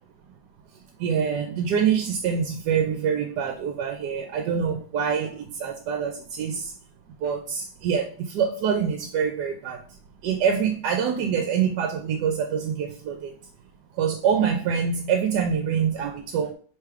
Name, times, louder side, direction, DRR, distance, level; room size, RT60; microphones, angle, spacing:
voice 1, 1.0-6.7 7.2-9.8 10.2-13.3 13.9-16.5, right 7 dB, 75° right, 1.1 m, -25 dB
3.5 x 3.3 x 4.6 m
omnidirectional pair, 1.9 m